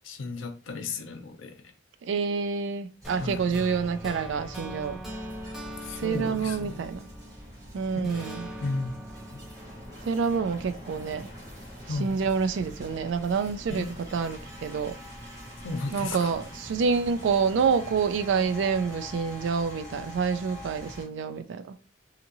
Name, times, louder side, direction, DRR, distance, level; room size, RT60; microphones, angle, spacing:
voice 1, 0.0-1.7 3.2-3.6 5.8-6.9 7.9-8.1 8.6-9.0 9.3-9.4 11.9-12.1 13.7-13.9 15.6-16.3, left 3 dB, 90° left, 0.5 m, -34 dB
voice 2, 2.0-5.0 6.0-7.1 7.7-8.4 10.0-11.3 12.0-13.8 14.1-15.0 15.9-21.8, right 5 dB, 75° right, 0.3 m, -27 dB
sound 1, 3.0-7.6 8.0-11.1, right 1 dB, ahead, 0.5 m, -42 dB
sound 2, 3.0-21.0, equal, 20° right, 1.0 m, -44 dB
2.8 x 2.6 x 2.6 m
head